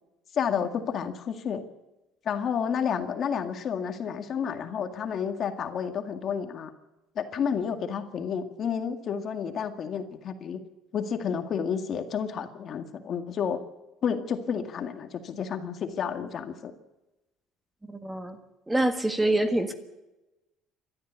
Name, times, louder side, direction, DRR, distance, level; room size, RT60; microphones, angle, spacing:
voice 1, 0.3-1.6 2.3-6.7 7.2-10.6 10.9-13.6 14.0-16.7, left 7 dB, 40° left, 6 dB, 2.0 m, -30 dB
voice 2, 17.9-18.4 18.7-19.7, right 1 dB, 10° right, 8 dB, 1.5 m, -25 dB
29.0 x 13.0 x 8.2 m, 1.0 s
cardioid pair, 145°, 0 cm